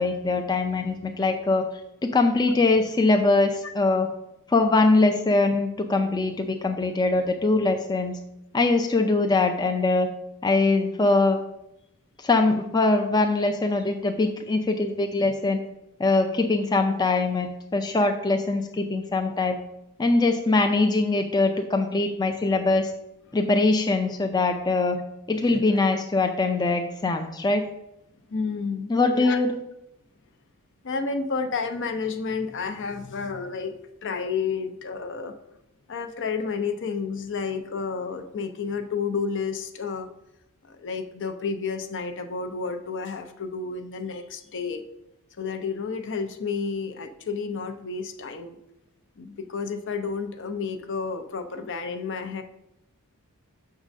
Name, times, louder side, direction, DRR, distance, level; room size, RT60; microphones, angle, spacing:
voice 1, 0.0-1.7 2.0-4.1 4.5-8.2 8.5-10.1 10.4-11.4 12.2-15.6 16.0-19.6 20.0-22.9 23.3-25.0 25.3-27.6 28.9-29.6, left 3 dB, 20° left, 4 dB, 0.4 m, -22 dB
voice 2, 28.3-29.4 30.8-35.3 35.9-40.1 40.6-44.8 45.4-48.6 49.2-52.4, left 5 dB, 55° left, 7 dB, 0.7 m, -31 dB
6.5 x 3.8 x 6.1 m, 0.84 s
head